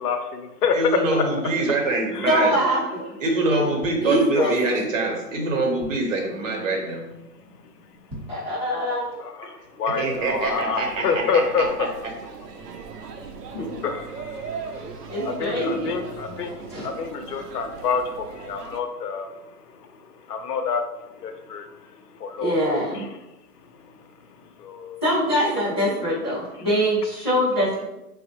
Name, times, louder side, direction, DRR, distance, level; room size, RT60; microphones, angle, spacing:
voice 1, 0.0-0.8 2.1-2.4 4.3-4.5 7.4-7.6 8.1-8.5 9.2-11.9 13.5-14.8 15.2-19.4 19.8-20.8 21.2-21.8 22.2-22.5 23.0-23.1 23.8-24.0 24.6-25.0, left 5 dB, 75° left, 6 dB, 0.6 m, -28 dB
voice 2, 0.7-2.5 3.2-7.0 9.6-12.1, right 2 dB, 55° right, 1 dB, 0.8 m, -25 dB
voice 3, 2.2-3.1 4.0-4.6 8.3-9.2 13.5-13.8 15.1-15.9 16.7-16.9 22.4-23.0 25.0-27.8, equal, 20° left, -10 dB, 0.4 m, -23 dB
sound 1, 3.8-4.8 5.3-5.4 5.5-6.3 6.8-7.0 7.3-7.4 7.9-8.5 9.0-9.1, right 1 dB, 15° right, 0.7 m, -42 dB
sound 2, 9.9-18.8, right 5 dB, 80° right, 0.6 m, -39 dB
3.6 x 2.0 x 2.8 m, 0.93 s
hypercardioid pair, 160°, 48 cm